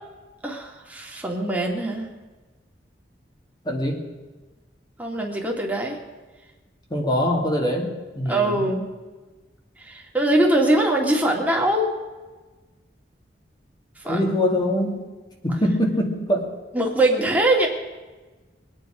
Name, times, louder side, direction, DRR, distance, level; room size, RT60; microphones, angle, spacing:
voice 1, 0.4-2.1 5.0-6.0 8.3-8.9 9.8-11.9 14.1-14.2 16.7-17.7, right 1 dB, 10° right, -1 dB, 2.3 m, -22 dB
voice 2, 3.7-4.0 6.9-8.5 14.1-15.1 15.4-16.5, equal, 25° left, 1 dB, 2.5 m, -23 dB
23.5 x 9.1 x 5.0 m, 1.2 s
head